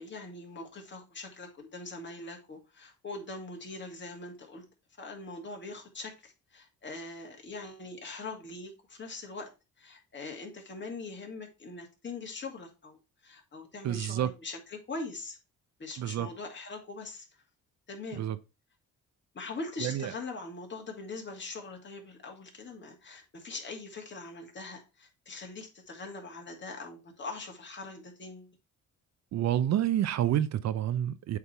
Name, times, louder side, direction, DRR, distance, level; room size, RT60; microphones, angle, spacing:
voice 1, 0.0-4.6 5.0-9.5 9.8-15.4 15.8-17.3 17.9-18.2 19.3-28.5, left 3 dB, 40° left, 2.3 m, -42 dB
voice 2, 13.8-14.3 16.0-16.3 18.2-18.4 19.8-20.1 29.3-31.4, right 11 dB, 60° right, 0.6 m, -28 dB
8.1 x 3.6 x 4.4 m
cardioid pair, 90°, 30 cm